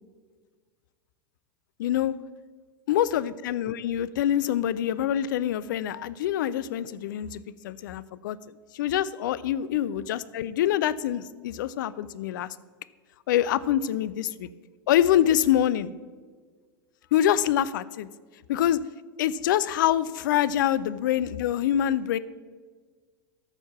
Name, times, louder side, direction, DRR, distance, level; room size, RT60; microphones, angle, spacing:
voice 1, 1.8-2.1 2.9-8.4 8.7-12.5 13.3-14.5 14.9-15.9 17.1-18.1 18.5-18.8 19.2-22.2, left 11 dB, 55° left, 16 dB, 0.4 m, -25 dB
13.0 x 4.5 x 5.8 m, 1.5 s
figure-of-eight pair, 85°, 12 cm